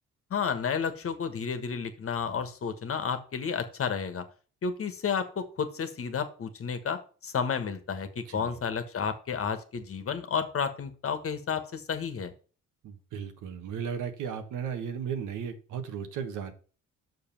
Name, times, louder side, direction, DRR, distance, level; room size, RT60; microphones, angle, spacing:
voice 1, 0.3-4.2 4.6-12.3, left 6 dB, 50° left, 10 dB, 1.4 m, -31 dB
voice 2, 12.8-16.5, right 7 dB, 85° right, 7 dB, 1.4 m, -35 dB
6.6 x 5.2 x 5.8 m, 0.38 s
cardioid pair, 90°, 30 cm